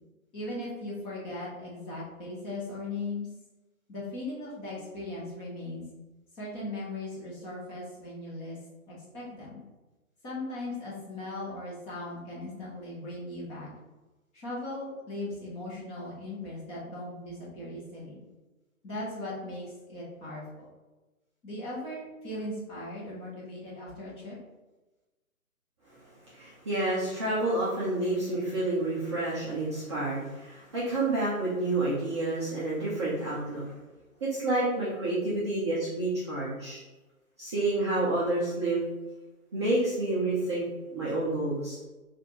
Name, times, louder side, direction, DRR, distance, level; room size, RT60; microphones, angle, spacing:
voice 1, 0.3-3.3 3.9-5.8 6.4-8.6 8.9-9.6 10.2-13.7 14.3-18.2 18.8-20.7 21.4-24.3, left 2 dB, 15° left, -6 dB, 0.8 m, -38 dB
voice 2, 26.3-33.6 34.2-36.8 37.4-38.9 39.5-40.6 40.9-41.8, right 2 dB, 20° right, -9 dB, 0.5 m, -29 dB
5.7 x 2.5 x 2.9 m, 1.1 s
hypercardioid pair, 145°, 43 cm